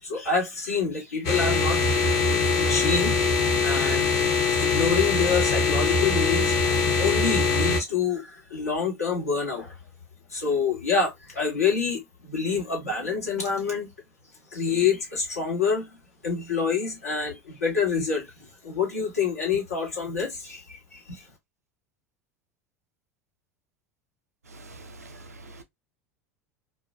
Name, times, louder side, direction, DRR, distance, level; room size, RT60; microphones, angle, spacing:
voice 1, 0.0-2.1 2.4-3.2 3.6-4.1 4.6-6.5 7.0-9.8 10.3-13.9 14.5-16.0 16.2-18.3 18.6-21.2, left 5 dB, 80° left, 1.2 m, -27 dB
sound 1, 1.2-7.8, left 4 dB, 45° left, 0.7 m, -22 dB
voice 2, 24.5-25.6, right 2 dB, 85° right, 0.5 m, -45 dB
2.4 x 2.2 x 2.4 m
figure-of-eight pair, 75°, 8 cm